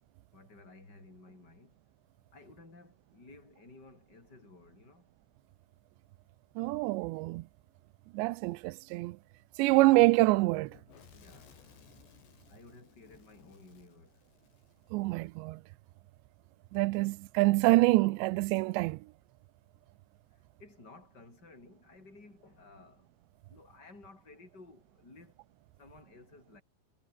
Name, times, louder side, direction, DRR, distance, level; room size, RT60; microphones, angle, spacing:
voice 1, 0.3-1.7 2.3-5.0 11.1-11.5 12.5-14.1 20.6-23.1 23.5-25.3 25.8-26.6, left 3 dB, 20° left, 8.2 m, -55 dB
voice 2, 6.6-7.4 8.1-9.2 9.6-10.8 14.9-15.6 16.7-19.0, right 21 dB, 80° right, 2.8 m, -26 dB
Fire / Explosion, 10.5-15.4, left 6 dB, 70° left, 7.0 m, -59 dB
omnidirectional pair, 5.2 m